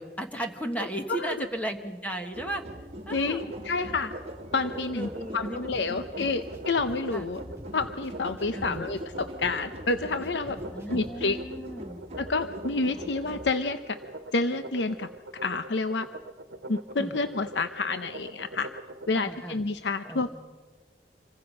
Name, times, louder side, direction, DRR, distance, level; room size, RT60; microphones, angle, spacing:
voice 1, 0.0-2.6 3.1-3.4 4.6-5.6 5.9-6.3 7.1-7.5 8.5-8.9 10.7-12.0 17.0-17.2 19.1-19.6 20.0-20.4, right 1 dB, 10° left, 4 dB, 1.4 m, -36 dB
voice 2, 0.8-1.5 3.1-4.1 4.5-7.4 7.7-10.6 10.9-11.4 12.2-14.0 14.3-15.1 15.4-16.1 16.7-18.7 19.1-20.4, left 3 dB, 80° left, 10 dB, 0.8 m, -29 dB
sound 1, 2.3-13.5, equal, 35° right, 1.5 m, -42 dB
sound 2, 3.2-19.2, right 1 dB, 70° right, 1.2 m, -43 dB
sound 3, 5.7-11.3, equal, 10° right, 6.3 m, -49 dB
27.5 x 23.0 x 5.5 m, 1.3 s
head